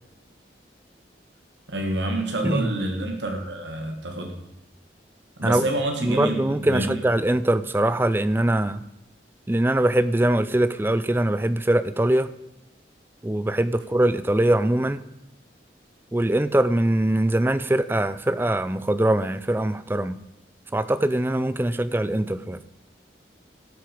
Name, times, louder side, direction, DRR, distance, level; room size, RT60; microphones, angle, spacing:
voice 1, 1.7-4.3 5.4-6.4 6.7-7.0, right 1 dB, 85° right, 3 dB, 1.6 m, -27 dB
voice 2, 6.0-8.8 9.5-12.3 13.2-15.0 16.1-20.2 20.7-22.6, right 1 dB, 10° right, 14 dB, 0.4 m, -22 dB
17.5 x 6.1 x 5.1 m, 0.92 s
head